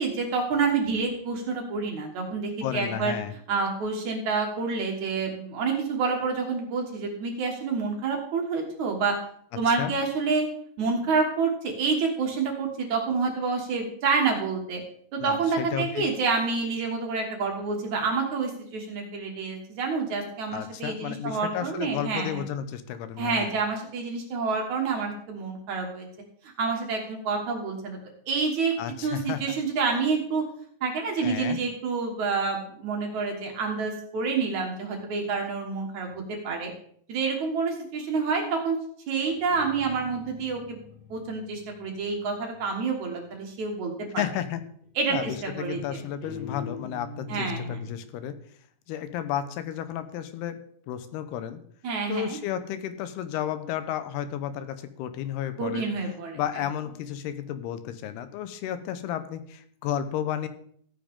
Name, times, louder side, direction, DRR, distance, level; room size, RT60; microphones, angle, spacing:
voice 1, 0.0-3.1 3.5-9.1 9.5-10.5 10.8-14.8 15.1-22.4 23.2-26.1 26.6-28.0 28.3-28.7 29.0-30.4 30.8-36.7 37.1-38.8 39.1-40.8 41.1-44.2 45.0-46.0 47.3-47.8 51.8-52.4 55.6-56.4, right 4 dB, 55° right, 1 dB, 2.6 m, -28 dB
voice 2, 2.6-3.3 9.7-9.9 15.2-16.0 20.5-23.5 28.8-29.5 31.2-31.6 44.2-44.6 45.1-48.4 48.9-50.6 50.9-51.6 52.1-55.9 56.3-60.5, left 10 dB, 90° left, 11 dB, 2.9 m, -32 dB
Guitar, 39.3-42.9 44.5-44.8 45.1-48.0, left 5 dB, 55° left, 7.1 m, -42 dB
14.0 x 8.9 x 3.7 m, 0.62 s
omnidirectional pair, 4.5 m